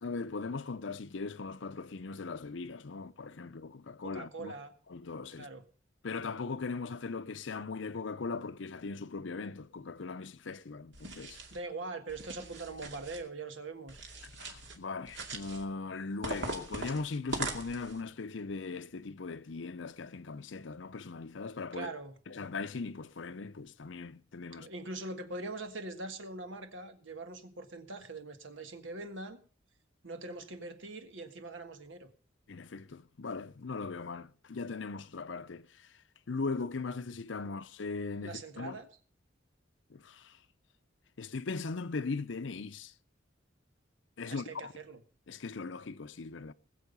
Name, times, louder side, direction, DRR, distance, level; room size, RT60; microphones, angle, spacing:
voice 1, 0.0-4.5 4.9-5.5 6.0-11.4 14.2-21.9 22.3-24.7 32.5-36.0 36.3-38.8 39.9-40.4 41.2-42.9 44.2-44.7 45.3-46.5, left 4 dB, 70° left, 0.7 m, -39 dB
voice 2, 4.1-4.7 5.4-5.6 11.5-14.0 21.7-22.1 24.5-29.4 30.0-32.1 38.2-38.9 44.2-45.0, right 2 dB, 80° right, 1.6 m, -42 dB
sound 1, 10.9-11.6 12.1-13.2 13.9-14.8 15.1-15.6 16.2-18.0, right 3 dB, 65° right, 2.3 m, -41 dB
20.0 x 7.6 x 5.3 m
head